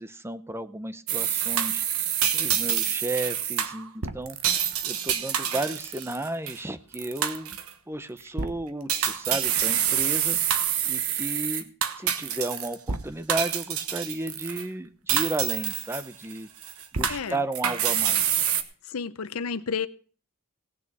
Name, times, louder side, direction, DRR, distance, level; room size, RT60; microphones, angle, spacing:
voice 1, 0.0-1.8 2.3-7.6 7.9-11.7 12.0-16.5 16.9-18.4, right 1 dB, 10° right, 0.7 m, -33 dB
sound 1, 1.1-6.6 6.9-7.7 8.2-8.5 8.9-13.0 13.3-14.6 15.1-16.3 16.6-18.6, right 9 dB, 85° right, 1.2 m, -27 dB
voice 2, 17.1-17.4 18.9-19.9, left 6 dB, 90° left, 0.7 m, -31 dB
17.5 x 6.9 x 6.0 m
head